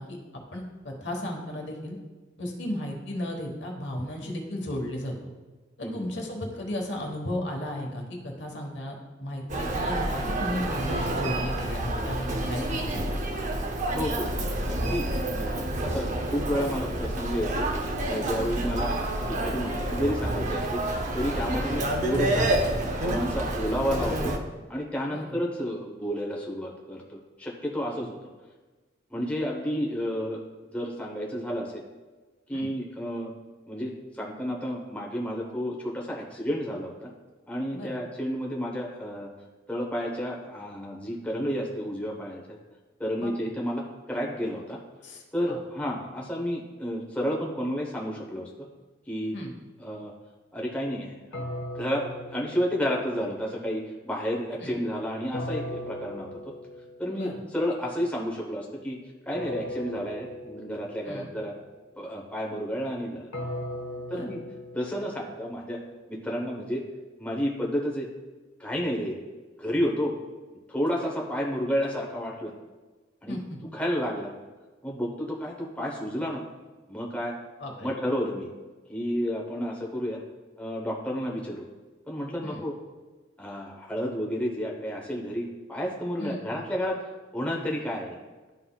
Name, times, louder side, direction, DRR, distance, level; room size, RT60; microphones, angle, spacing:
voice 1, 0.0-2.0 2.4-5.3 5.8-8.9 9.2-13.2 18.4-18.6 25.1-25.4 32.5-32.7 37.7-38.0 43.2-43.3 45.0-45.6 49.3-49.5 54.6-54.7 57.1-57.3 61.0-61.3 64.1-64.3 73.3-73.6 77.6-77.9 82.4-82.6 86.2-86.4, left 1 dB, 65° left, 2 dB, 1.2 m, -35 dB
Human voice, 9.5-24.4, right 1 dB, 40° right, 0.6 m, -29 dB
voice 2, 13.9-14.3 14.7-17.7 18.0-19.0 19.3-20.8 21.1-22.5 22.8-24.3 24.7-28.3 29.1-30.4 30.7-31.8 32.5-33.3 33.7-37.1 37.5-39.3 39.7-42.6 43.0-44.8 45.3-48.5 49.1-49.4 49.8-50.1 50.5-51.4 51.7-56.3 57.0-59.0 59.3-61.5 62.0-63.3 64.1-64.4 64.7-65.8 66.1-66.8 67.2-68.1 68.6-69.2 69.6-70.1 70.7-72.5 73.2-73.4 73.7-74.3 74.8-76.4 76.9-77.3 77.8-78.5 78.9-80.2 80.6-81.7 82.1-82.8 83.4-87.0 87.3-88.2, equal, 5° left, -2 dB, 0.8 m, -31 dB
sound 1, 51.3-53.4 55.3-57.2 59.3-61.2 63.3-65.5, left 1 dB, 85° left, 0.9 m, -38 dB
11.5 x 3.9 x 2.3 m, 1.3 s
head